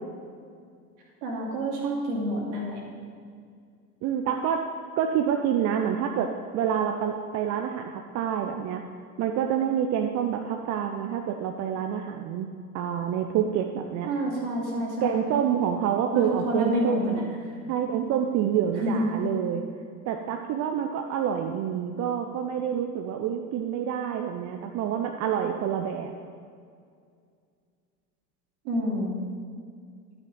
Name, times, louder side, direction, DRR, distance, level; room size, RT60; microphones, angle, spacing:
voice 1, 1.2-2.8 14.1-15.3 16.1-17.2 18.7-19.0 28.6-29.1, equal, 55° right, -1 dB, 2.6 m, -28 dB
voice 2, 4.0-4.7 5.0-8.8 9.2-12.5 12.7-14.1 15.0-17.2 17.7-19.6 20.1-26.1, right 9 dB, 35° right, 4 dB, 0.6 m, -27 dB
11.5 x 9.7 x 3.9 m, 2.2 s
figure-of-eight pair, 80°, 47 cm